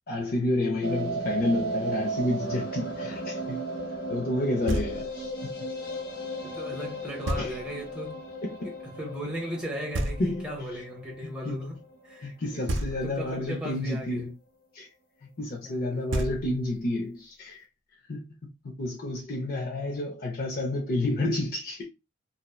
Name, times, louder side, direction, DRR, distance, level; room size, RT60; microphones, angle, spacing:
voice 1, 0.1-3.6 4.1-5.5 7.4-7.6 8.4-8.6 10.2-10.5 11.4-11.6 12.2-14.3 14.7-14.9 15.4-17.6 18.1-21.9, left 1 dB, 50° left, 0.5 m, -30 dB
sound 1, 0.8-12.9 13.2-13.3 13.6-13.7 13.9-14.0, right 2 dB, 80° left, 1.3 m, -36 dB
Knock, 4.7-5.3 7.3-7.9 9.9-10.7 12.7-13.4 15.7-15.8 16.1-16.9, right 1 dB, 80° right, 0.5 m, -32 dB
voice 2, 6.4-8.3 8.6-11.8 12.0-14.2 15.6-16.0, equal, 5° right, 0.7 m, -37 dB
2.7 x 2.0 x 2.2 m
head